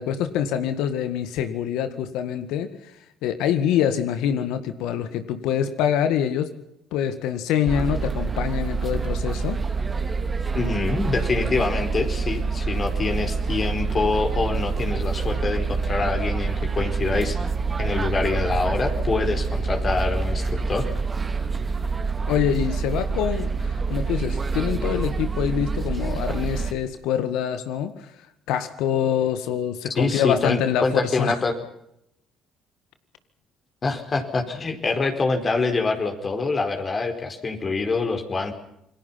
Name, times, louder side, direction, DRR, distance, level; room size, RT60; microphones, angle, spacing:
voice 1, 0.0-2.7 3.2-6.5 6.9-9.6 22.3-27.9 28.5-31.4, left 9 dB, 75° left, 10 dB, 1.8 m, -25 dB
sound 1, 7.6-26.7, right 4 dB, 30° right, 2.5 m, -26 dB
voice 2, 10.5-17.5 17.8-20.9 29.9-31.6 33.8-38.5, left 3 dB, 40° left, 5 dB, 4.6 m, -25 dB
28.0 x 20.5 x 5.8 m, 0.79 s
hypercardioid pair, 65°, 0 cm